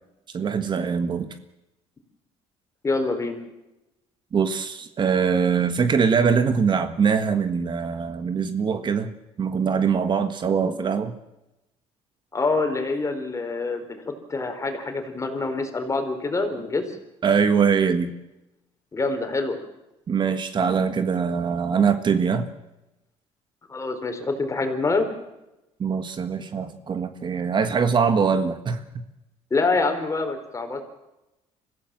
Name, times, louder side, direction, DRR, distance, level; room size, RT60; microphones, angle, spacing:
voice 1, 0.3-1.3 4.3-9.1 9.4-11.1 17.2-18.1 20.1-22.5 25.8-28.8, right 6 dB, 40° right, 9 dB, 1.6 m, -22 dB
voice 2, 2.8-3.4 12.3-17.0 18.9-19.6 23.7-25.1 29.5-30.8, left 3 dB, 25° left, 7 dB, 4.1 m, -26 dB
24.5 x 15.5 x 7.5 m, 0.95 s
cardioid pair, 105°, 12 cm